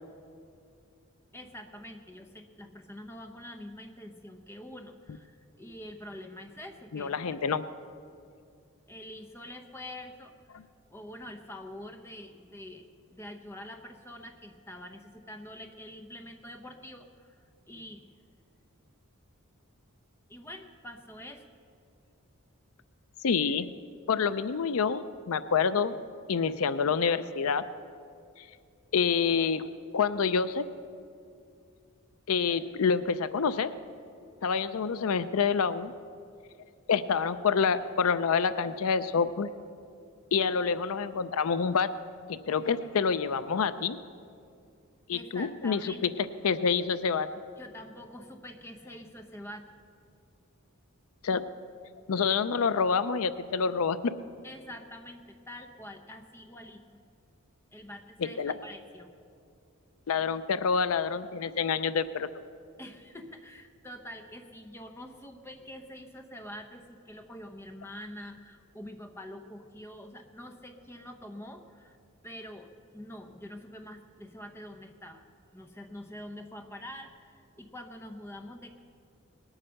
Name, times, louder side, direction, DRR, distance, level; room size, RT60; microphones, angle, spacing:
voice 1, 1.3-7.4 8.9-10.6 10.9-18.1 20.3-21.5 45.1-46.0 47.6-49.7 54.4-56.8 57.7-59.1 62.8-72.0 72.2-75.2 75.5-78.8, left 1 dB, 10° left, 5 dB, 0.8 m, -45 dB
voice 2, 6.9-7.6 23.2-23.7 24.1-26.0 26.3-27.6 28.9-30.6 32.3-33.7 34.4-35.9 36.9-39.5 40.3-41.9 42.3-44.0 45.1-45.9 46.4-47.3 51.2-51.4 52.1-54.0 58.4-58.5 60.1-62.3, left 6 dB, 75° left, 14 dB, 0.5 m, -27 dB
19.5 x 8.8 x 6.4 m, 2.4 s
head